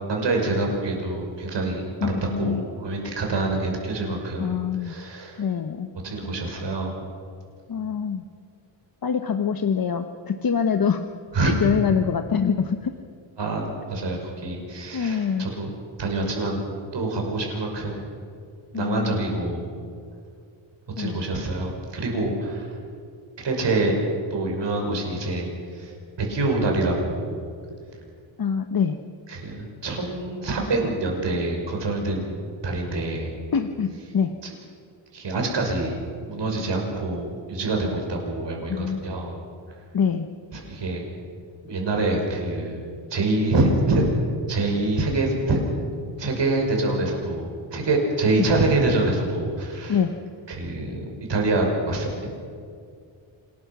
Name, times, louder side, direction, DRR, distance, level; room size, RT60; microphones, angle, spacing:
voice 1, 0.1-4.5 4.8-5.4 6.0-6.9 11.3-11.5 13.4-15.7 16.0-16.6 16.9-18.1 18.7-19.7 21.0-22.7 23.4-24.0 24.3-25.5 25.7-25.9 26.2-27.4 29.3-33.3 35.1-36.0 36.2-39.3 40.5-41.0 41.6-42.8 43.1-44.0 44.5-45.6 46.2-50.0 50.5-52.3, right 2 dB, 60° right, 1 dB, 6.1 m, -26 dB
voice 2, 2.0-2.6 4.4-4.9 5.4-5.9 7.7-8.2 9.0-11.0 11.4-12.9 14.9-15.5 18.7-19.2 21.0-21.2 28.4-29.0 33.5-34.4 38.7-39.0 39.9-40.3 48.4-48.5 49.9-50.2, left 7 dB, 45° left, 7 dB, 1.1 m, -25 dB
27.5 x 20.0 x 6.2 m, 2.3 s
cardioid pair, 105°, 48 cm